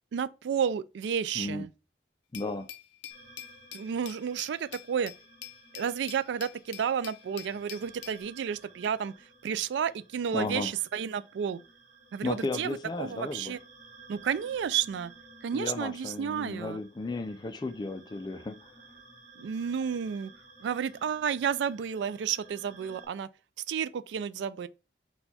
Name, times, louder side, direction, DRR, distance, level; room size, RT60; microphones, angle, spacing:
voice 1, 0.1-1.7 3.7-5.1 5.7-9.1 9.4-11.6 12.1-13.6 14.1-15.1 15.4-16.8 19.4-20.3 20.6-23.3 23.7-24.7, right 7 dB, 75° right, 0.3 m, -31 dB
voice 2, 1.4-1.7 2.3-2.7 10.3-10.7 12.2-13.6 15.5-18.6, left 3 dB, 25° left, 0.3 m, -34 dB
Glass, 2.3-8.2, left 11 dB, 85° left, 0.5 m, -46 dB
sound 1, 3.1-23.1, right 3 dB, 40° right, 1.2 m, -55 dB
4.3 x 2.3 x 4.0 m
head